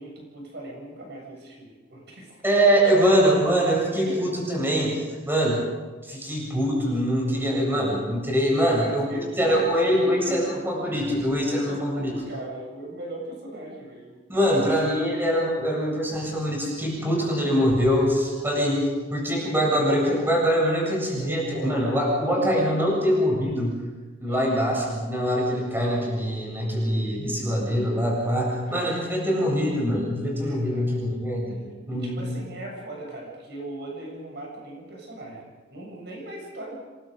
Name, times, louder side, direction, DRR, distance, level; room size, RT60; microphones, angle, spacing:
voice 1, 0.0-2.4 2.7-3.2 3.8-4.3 8.3-10.7 11.7-14.6 21.2-22.0 24.2-24.6 28.6-28.8 30.3-30.9 31.9-36.8, right 1 dB, 55° right, 0 dB, 7.3 m, -38 dB
voice 2, 2.4-5.6 6.0-9.0 9.4-12.1 14.3-23.8 24.2-31.6 31.9-32.3, equal, 10° right, -2 dB, 7.9 m, -23 dB
28.5 x 23.5 x 5.3 m, 1.3 s
head